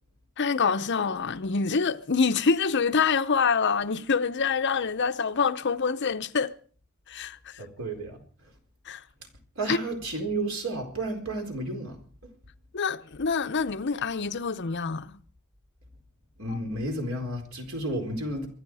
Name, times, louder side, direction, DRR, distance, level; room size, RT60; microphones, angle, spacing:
voice 1, 0.4-6.5 7.1-7.6 8.9-9.0 9.7-9.8 12.7-15.2 16.5-16.6, left 5 dB, 55° left, 0.8 m, -26 dB
voice 2, 7.6-8.2 9.6-12.0 16.4-18.5, right 2 dB, 75° right, 4.2 m, -32 dB
24.0 x 10.5 x 4.9 m
head